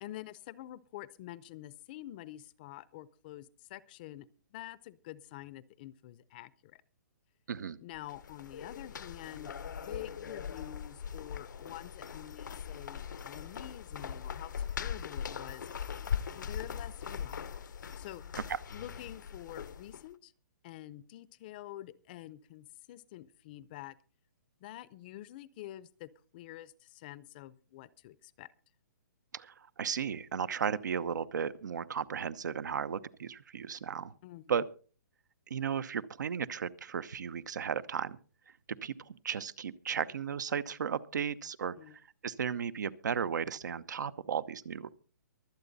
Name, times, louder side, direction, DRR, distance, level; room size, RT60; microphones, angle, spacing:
voice 1, 0.0-6.8 7.8-15.7 16.4-17.6 18.0-18.2 18.7-20.3 20.6-24.0 24.6-28.5 34.2-34.6 41.8-42.0, left 14 dB, 30° left, 19 dB, 0.6 m, -47 dB
voice 2, 7.5-7.8 29.3-34.1 34.5-34.6 35.5-38.2 38.7-44.9, right 7 dB, 75° right, 16 dB, 0.9 m, -35 dB
sound 1, 8.0-20.1, left 7 dB, 80° left, 0.9 m, -40 dB
23.5 x 8.2 x 4.0 m, 0.39 s
hypercardioid pair, 160°, 10 cm